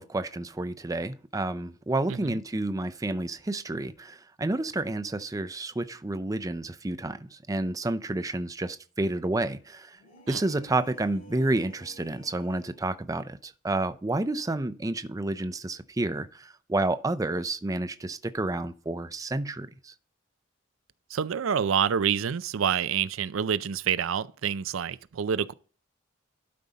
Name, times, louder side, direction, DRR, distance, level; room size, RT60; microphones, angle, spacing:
voice 1, 0.0-10.0 10.3-19.9, right 2 dB, 15° right, 0.5 m, -30 dB
voice 2, 2.1-2.4 10.3-10.4 21.1-25.5, right 7 dB, 80° right, 0.5 m, -27 dB
sound 1, 9.9-12.9, equal, 45° left, 2.3 m, -52 dB
12.0 x 5.4 x 4.0 m
head